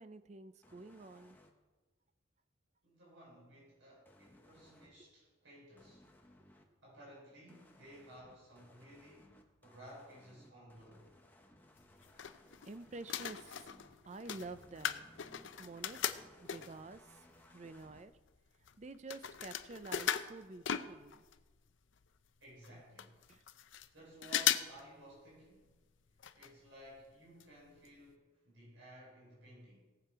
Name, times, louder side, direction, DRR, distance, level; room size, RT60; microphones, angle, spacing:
voice 1, 0.0-1.4 12.6-13.7 14.0-15.1 15.6-16.0 16.4-17.0 17.5-18.1 18.8-21.2 22.7-22.8 23.3-23.4, right 3 dB, 35° right, 12 dB, 0.5 m, -49 dB
sound 1, 0.6-1.5 4.0-4.9 5.8-6.6 7.5-13.9 14.3-18.0, left 1 dB, 10° left, 1.1 m, -63 dB
voice 2, 2.8-6.0 6.8-11.1 22.4-23.2 23.9-25.7 26.3-29.8, equal, 85° right, -5 dB, 5.2 m, -56 dB
sound 2, 11.8-12.7 13.0-16.9 17.5-17.6 17.8-21.4 21.7-21.8 22.0-22.1 22.6-22.7 23.0-23.9 24.2-24.8 25.1-25.2 26.2-26.5 26.8-26.9 27.4-27.5 27.9-28.0, left 9 dB, 70° left, 0.6 m, -38 dB
18.0 x 7.9 x 4.7 m, 1.2 s
head